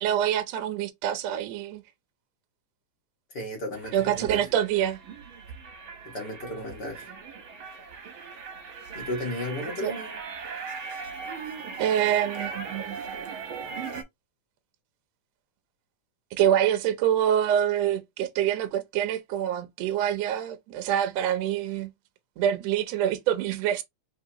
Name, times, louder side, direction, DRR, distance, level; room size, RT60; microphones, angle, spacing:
voice 1, 0.0-1.8 3.9-5.0 9.8-9.9 11.8-13.0 16.3-21.9 22.4-23.8, right 10 dB, 75° right, 1.6 m, -26 dB
voice 2, 3.3-4.4 6.1-7.1 9.0-10.2, left 1 dB, 45° left, 1.7 m, -34 dB
sound 1, 3.7-14.0, right 5 dB, 60° right, 1.4 m, -39 dB
4.6 x 3.5 x 2.9 m
omnidirectional pair, 3.5 m